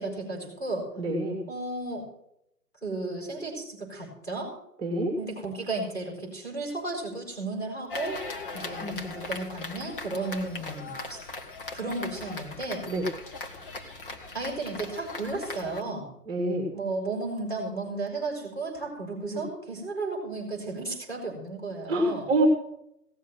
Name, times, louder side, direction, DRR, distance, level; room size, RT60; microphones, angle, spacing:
voice 1, 0.0-0.9 1.5-2.0 2.8-4.5 5.2-11.2 11.7-12.9 14.3-16.1 16.7-22.2, right 2 dB, 5° left, -2 dB, 5.3 m, -34 dB
voice 2, 1.0-1.4 4.8-5.1 8.8-9.0 12.8-13.1 16.3-16.7 19.3-19.4 21.9-22.5, right 1 dB, 10° right, 2 dB, 2.2 m, -27 dB
sound 1, 7.9-15.8, left 3 dB, 35° left, 1.7 m, -39 dB
17.5 x 7.5 x 7.8 m, 0.77 s
figure-of-eight pair, 150°, 47 cm